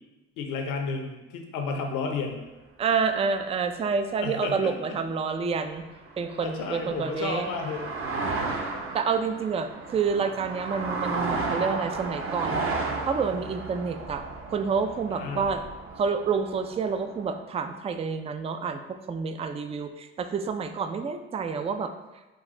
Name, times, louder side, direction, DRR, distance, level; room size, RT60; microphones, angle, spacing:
voice 1, 0.4-2.4 4.2-4.7 6.4-7.9 15.1-15.4, left 4 dB, 70° left, 3 dB, 0.8 m, -32 dB
voice 2, 2.8-5.8 6.2-7.5 8.9-12.7 13.0-14.2 14.5-15.6 15.9-21.9, right 5 dB, 20° right, 8 dB, 0.3 m, -28 dB
sound 1, 5.8-17.4, right 3 dB, 40° right, 0.8 m, -34 dB
5.3 x 2.4 x 3.8 m, 1.1 s
hypercardioid pair, 65°, 33 cm